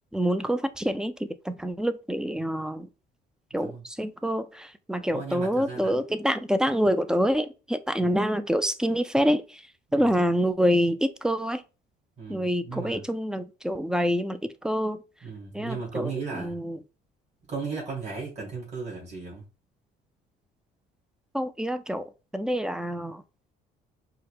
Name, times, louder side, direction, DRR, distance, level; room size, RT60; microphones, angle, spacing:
voice 1, 0.1-2.9 3.5-9.6 9.9-11.6 12.3-15.0 15.5-16.8 21.3-23.2, equal, 5° right, 0.3 m, -26 dB
voice 2, 5.1-5.9 8.0-8.1 10.0-10.2 12.2-13.0 15.2-16.6 17.5-19.4, right 4 dB, 40° right, 2.2 m, -36 dB
4.7 x 2.1 x 3.1 m
cardioid pair, 110°, 17 cm